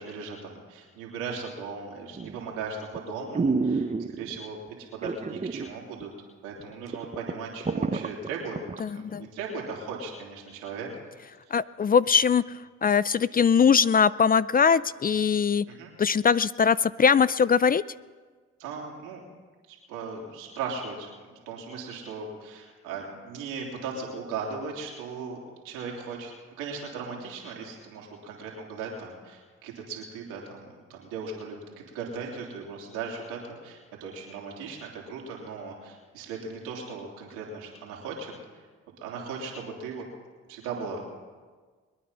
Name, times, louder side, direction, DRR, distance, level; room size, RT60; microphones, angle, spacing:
voice 1, 0.0-4.6 4.9-6.1 6.4-10.9 11.5-11.6 15.6-15.9 18.6-19.2 19.7-25.4 25.6-26.3 26.6-30.6 30.9-31.6 31.9-38.6 39.0-40.0 40.5-41.1, right 4 dB, 90° right, -1 dB, 3.1 m, -37 dB
sound 1, 2.2-2.5 3.0-3.1 3.3-4.4 5.0-5.7 6.0-6.1 6.6-6.7 6.9-8.8 9.2-9.3, right 4 dB, 20° right, 0.8 m, -28 dB
voice 2, 8.8-9.3 11.5-12.4 12.8-15.7 16.0-17.8, left 6 dB, 30° left, 18 dB, 0.4 m, -21 dB
22.5 x 9.5 x 5.6 m, 1.5 s
hypercardioid pair, 50°, 31 cm